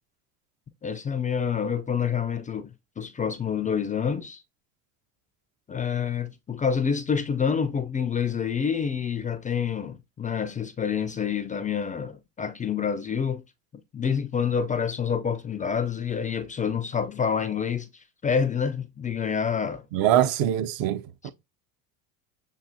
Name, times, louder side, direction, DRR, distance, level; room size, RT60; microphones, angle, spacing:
voice 1, 0.8-2.7 3.0-4.4 5.7-13.4 13.9-17.9 18.2-19.8, left 7 dB, 20° left, 0.4 m, -27 dB
voice 2, 19.9-21.3, right 11 dB, 55° right, 0.7 m, -23 dB
7.3 x 2.7 x 2.6 m
supercardioid pair, 90°, 42 cm